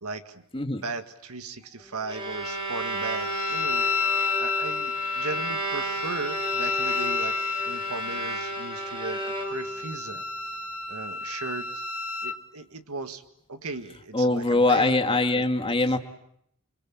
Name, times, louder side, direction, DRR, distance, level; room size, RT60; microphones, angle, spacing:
voice 1, 0.0-0.4 0.7-3.9 4.4-10.2 10.9-11.7 12.2-13.2 13.5-15.9, right 3 dB, 90° right, 9 dB, 1.9 m, -37 dB
Bowed string instrument, 1.8-9.9, right 2 dB, 25° right, 6.1 m, -33 dB
Wind instrument woodwind instrument, 2.4-12.4, left 4 dB, 75° left, 1.6 m, -31 dB
voice 2, 14.1-16.0, left 2 dB, 25° left, 7 dB, 1.8 m, -22 dB
28.5 x 23.0 x 8.7 m, 0.72 s
head